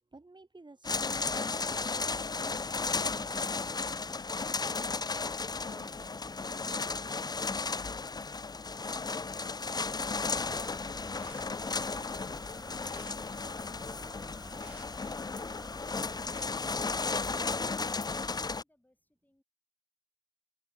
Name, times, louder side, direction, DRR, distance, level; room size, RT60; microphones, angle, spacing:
voice 1, 0.0-8.5, right 2 dB, 45° right, 3.1 m, -56 dB
sound 1, 0.8-18.6, left 4 dB, 40° left, 0.4 m, -34 dB
sound 2, 10.0-16.4, right 1 dB, 10° right, 2.7 m, -51 dB
voice 2, 18.2-19.4, left 1 dB, 15° left, 7.3 m, -73 dB
open air
wide cardioid pair, 55°, 11 cm